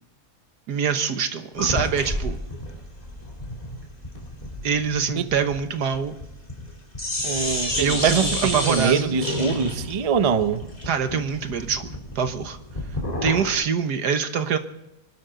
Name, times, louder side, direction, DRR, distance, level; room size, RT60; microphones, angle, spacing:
voice 1, 0.7-2.4 4.6-6.1 7.8-9.2 10.9-12.6 13.2-14.6, right 6 dB, 90° right, 1.8 m, -25 dB
sound 1, 1.6-6.7 6.9-13.5, left 1 dB, 25° left, 3.6 m, -30 dB
voice 2, 7.2-10.7, right 6 dB, 35° right, 0.5 m, -23 dB
25.0 x 12.5 x 3.9 m
omnidirectional pair, 1.7 m